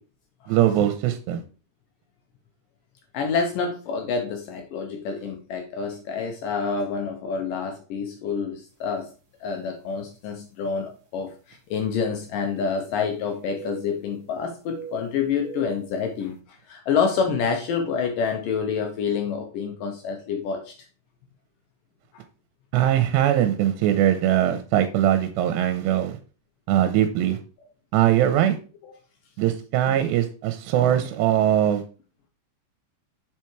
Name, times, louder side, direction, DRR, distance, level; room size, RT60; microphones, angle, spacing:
voice 1, 0.5-1.4 22.7-26.2 26.7-27.4 27.9-28.6 29.4-31.8, right 11 dB, 85° right, 8 dB, 2.8 m, -21 dB
voice 2, 3.1-9.1 9.4-16.3 16.7-20.7 28.8-28.9 29.9-30.1, left 6 dB, 80° left, 3 dB, 1.9 m, -27 dB
sound 1, 9.0-9.1 9.9-10.0 11.9-13.1 13.4-14.3 14.7-16.0, right 8 dB, 45° right, 1.9 m, -42 dB
7.5 x 4.6 x 4.5 m, 0.35 s
omnidirectional pair, 5.0 m